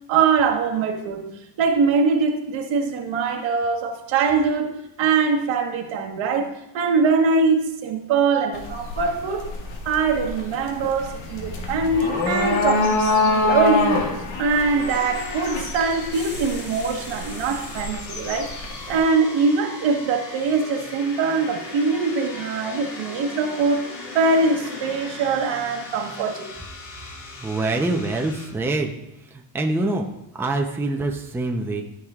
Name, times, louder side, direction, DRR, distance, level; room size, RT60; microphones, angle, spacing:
voice 1, 0.1-1.3 1.6-9.5 9.8-26.5, right 4 dB, 70° right, 1.4 m, -22 dB
sound 1, 8.5-19.0, left 3 dB, 80° left, 1.9 m, -26 dB
sound 2, 14.5-28.5, left 2 dB, 40° left, 2.4 m, -39 dB
sound 3, 16.1-18.0, left 2 dB, 25° left, 1.1 m, -41 dB
voice 2, 27.4-28.9 29.3-30.0 30.3-31.8, right 2 dB, 5° right, 0.6 m, -25 dB
13.5 x 6.3 x 2.4 m
cardioid pair, 130°, 47 cm